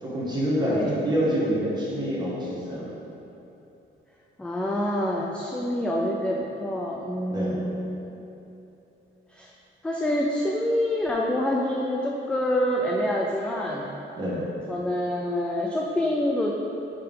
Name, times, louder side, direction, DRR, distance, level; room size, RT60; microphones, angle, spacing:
voice 1, 0.0-2.9 7.3-7.6 14.2-14.4, equal, 20° right, -7 dB, 1.5 m, -27 dB
voice 2, 0.6-1.0 4.4-8.1 9.3-9.5 9.8-13.9 14.7-16.5, left 1 dB, 5° left, -2 dB, 0.3 m, -26 dB
5.4 x 4.4 x 5.3 m, 2.9 s
wide cardioid pair, 165°, 21 cm